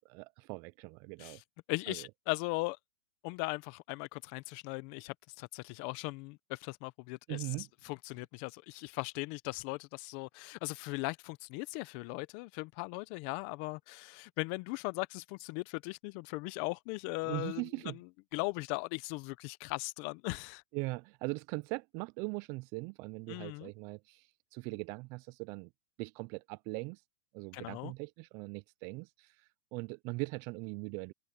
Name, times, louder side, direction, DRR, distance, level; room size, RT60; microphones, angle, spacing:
voice 1, 0.1-1.4 1.9-2.0 7.3-7.7 17.2-18.0 20.7-24.3 24.5-25.7 26.0-27.0 27.3-29.3 29.7-31.1, right 27 dB, 40° right, 0.4 m, -40 dB
voice 2, 1.7-2.8 3.2-20.6 23.3-23.7 27.5-27.9, left 25 dB, 45° left, 0.8 m, -39 dB
hypercardioid pair, 140°, 8 cm